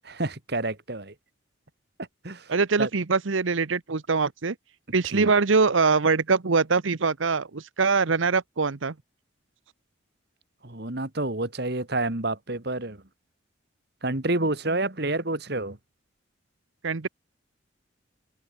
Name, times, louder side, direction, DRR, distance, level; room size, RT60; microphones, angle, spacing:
voice 1, 0.0-1.1 2.2-2.5 2.8-2.9 5.1-5.3 10.6-13.0 14.0-15.8, right 2 dB, 55° right, 2.1 m, -29 dB
voice 2, 2.5-4.5 4.9-8.9 16.8-17.1, right 4 dB, 80° right, 0.9 m, -23 dB
head